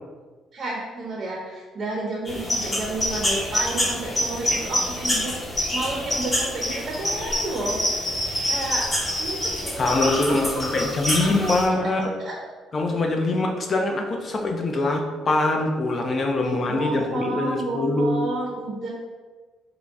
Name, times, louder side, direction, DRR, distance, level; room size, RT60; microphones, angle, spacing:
voice 1, 0.5-5.3 5.7-7.8 8.4-8.9 9.2-9.9 10.3-10.8 11.2-11.3 11.8-11.9 12.2-12.3 16.7-18.9, right 2 dB, 40° right, -2 dB, 0.6 m, -31 dB
sound 1, 2.3-11.7, left 1 dB, 20° left, 0.9 m, -26 dB
voice 2, 9.8-12.1 12.7-18.3, left 2 dB, 35° left, 2 dB, 0.5 m, -23 dB
3.8 x 2.2 x 3.5 m, 1.4 s
cardioid pair, 120°, 0 cm